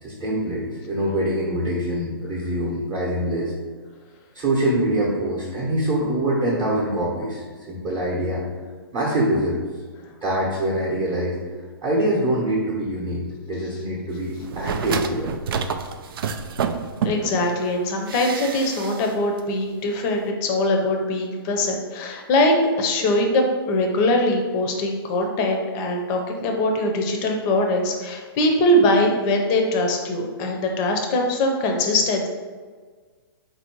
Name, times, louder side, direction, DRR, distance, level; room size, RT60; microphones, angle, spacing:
voice 1, 0.0-3.6 4.3-7.4 7.7-8.4 8.9-9.6 10.2-11.4 11.8-13.2 13.5-15.3, right 1 dB, 25° right, -6 dB, 0.8 m, -24 dB
sound 1, 14.4-17.4 18.1-19.1 19.4-19.5, right 6 dB, 65° right, 0.4 m, -28 dB
voice 2, 17.0-32.3, left 1 dB, 25° left, 2 dB, 0.6 m, -22 dB
4.2 x 2.6 x 4.5 m, 1.5 s
hypercardioid pair, 150°, 13 cm